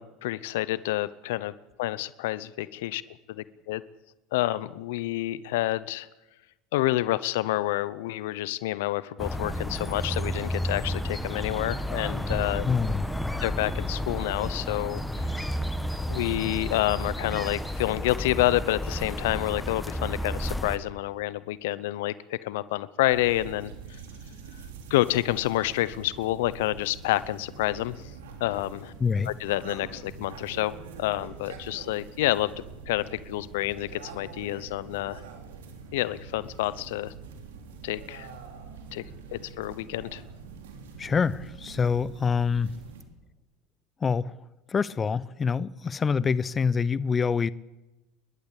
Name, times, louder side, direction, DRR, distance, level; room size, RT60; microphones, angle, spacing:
voice 1, 0.0-1.5 1.8-3.0 3.3-3.8 4.3-6.1 6.7-12.6 13.4-15.4 16.1-24.0 24.9-28.0 28.4-28.9 29.3-35.2 35.9-37.1 37.8-38.3 38.9-39.0 39.3-40.2, left 16 dB, 80° left, 0.8 m, -28 dB
sound 1, 9.2-20.8, equal, 5° left, 1.6 m, -31 dB
voice 2, 12.6-13.1 29.0-29.3 41.0-42.7 44.0-44.4 44.7-47.5, left 5 dB, 25° left, 0.7 m, -26 dB
sound 2, 23.1-43.0, right 5 dB, 90° right, 3.4 m, -44 dB
29.5 x 11.5 x 8.4 m
supercardioid pair, 100°, 0 cm